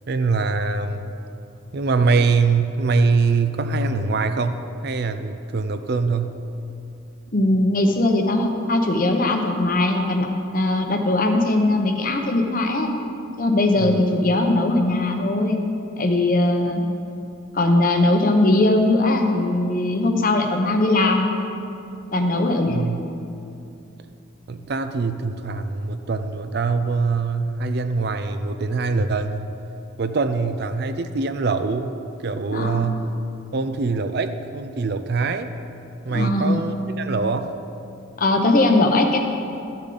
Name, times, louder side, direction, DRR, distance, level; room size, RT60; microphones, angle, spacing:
voice 1, 0.1-1.1 1.7-6.4 13.8-14.0 22.7-23.0 24.5-29.5 30.0-31.9 32.2-33.1 33.5-35.5 36.0-37.6, right 4 dB, 50° right, 9 dB, 0.5 m, -23 dB
voice 2, 7.3-10.3 10.5-12.9 13.4-15.6 16.0-16.8 17.5-21.3 22.1-22.9 32.5-32.8 36.1-36.6 38.2-39.2, left 2 dB, 45° left, 4 dB, 0.8 m, -20 dB
14.0 x 6.7 x 3.9 m, 2.7 s
head